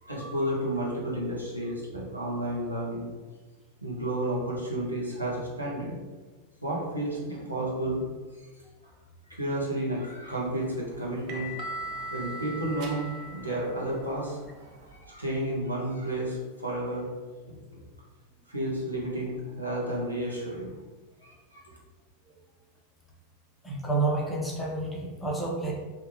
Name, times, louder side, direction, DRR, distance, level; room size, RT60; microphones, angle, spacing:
voice 1, 0.0-3.1 3.8-5.9 6.6-8.0 9.3-11.8 12.1-17.1 17.4-17.8 18.5-20.7 21.2-21.6, right 1 dB, 85° right, -5 dB, 0.7 m, -32 dB
sound 1, 10.2-15.0, right 1 dB, 40° right, 0.4 m, -40 dB
voice 2, 23.6-25.7, right 3 dB, 5° left, -3 dB, 0.6 m, -29 dB
2.5 x 2.2 x 3.1 m, 1.3 s
figure-of-eight pair, 90°, 0 cm